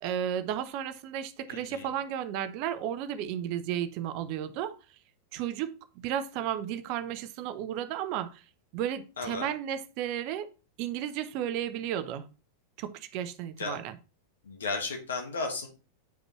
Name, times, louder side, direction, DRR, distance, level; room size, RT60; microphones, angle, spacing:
voice 1, 0.0-4.8 5.3-8.4 8.7-10.5 10.8-12.2 12.8-13.9, right 10 dB, 45° right, 0.7 m, -33 dB
voice 2, 1.5-1.9 9.2-9.5 13.6-13.8 14.4-15.7, left 3 dB, 65° left, 1.6 m, -34 dB
9.0 x 5.1 x 3.1 m
figure-of-eight pair, 90°, 0 cm